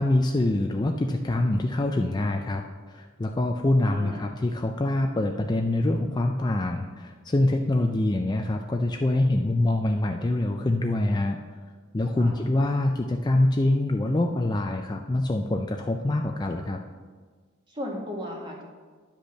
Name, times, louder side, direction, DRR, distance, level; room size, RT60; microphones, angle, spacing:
voice 1, 0.0-11.4 11.9-16.8, left 1 dB, 20° left, 4 dB, 0.4 m, -25 dB
voice 2, 3.9-4.3 12.1-12.3 17.7-18.6, equal, 25° right, -1 dB, 1.8 m, -35 dB
10.5 x 5.2 x 6.5 m, 1.5 s
head